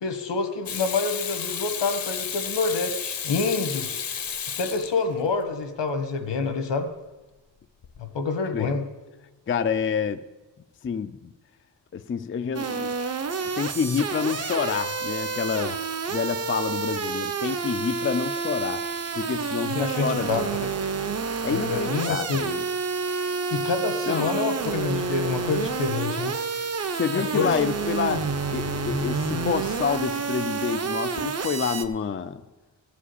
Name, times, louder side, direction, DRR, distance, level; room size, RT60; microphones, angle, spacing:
voice 1, 0.0-4.1 4.6-6.9 8.0-8.8 19.6-20.7 21.5-22.5 23.5-26.4 27.1-27.5, left 4 dB, 75° left, 7 dB, 1.5 m, -27 dB
Water tap faucet / Sink (filling or washing), 0.7-5.4 7.8-8.0, left 7 dB, 50° left, 0.9 m, -32 dB
voice 2, 9.5-10.2 10.8-11.3 11.9-12.9 13.6-15.8 16.1-18.8 19.2-20.5 21.4-22.6 24.1-24.3 26.9-28.2 28.5-32.4, left 6 dB, 30° left, 10 dB, 0.5 m, -28 dB
sound 1, 12.5-31.8, right 4 dB, 35° right, 0.8 m, -29 dB
15.0 x 5.0 x 8.2 m, 1.2 s
wide cardioid pair, 105°, 43 cm